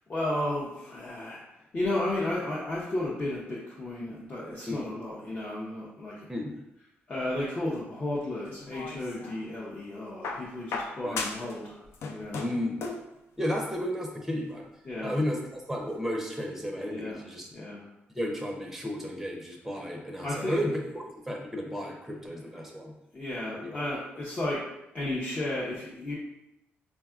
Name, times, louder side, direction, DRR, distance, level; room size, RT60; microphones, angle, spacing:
voice 1, 0.1-1.4 1.7-6.3 7.1-11.8 12.1-12.4 14.8-15.2 16.9-17.2 17.5-17.9 20.2-20.6 22.4-22.9 23.1-24.6 24.9-26.1, left 1 dB, 35° left, -7 dB, 0.7 m, -33 dB
sound 1, 8.5-9.4 10.2-11.6 11.8-13.1 14.2-14.3, left 4 dB, 75° left, 0.4 m, -36 dB
voice 2, 12.4-12.8 13.4-14.6 15.0-17.5 18.1-22.9 23.5-23.8 24.1-24.2, equal, 5° right, 1 dB, 0.6 m, -33 dB
3.6 x 2.2 x 2.3 m, 0.89 s
cardioid pair, 90°, 4 cm